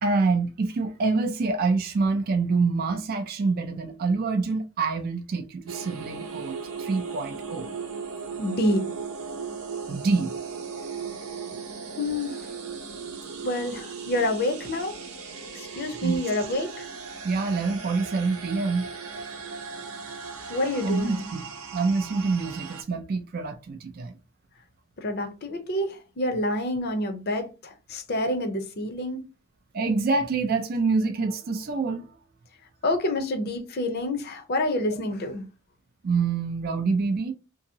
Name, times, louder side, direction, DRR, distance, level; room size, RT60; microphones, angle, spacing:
voice 1, 0.0-7.7 9.9-10.3 16.0-16.2 17.2-18.9 20.8-21.5 21.7-24.1 29.7-32.1 36.0-37.3, right 4 dB, 45° right, 0.4 m, -26 dB
sound 1, 5.7-22.8, right 5 dB, 85° right, 0.7 m, -37 dB
voice 2, 8.4-8.9 12.0-12.4 13.4-14.9 15.5-16.9 20.5-21.3 25.0-29.2 32.8-35.4, left 1 dB, 45° left, 0.6 m, -28 dB
2.7 x 2.7 x 2.7 m
head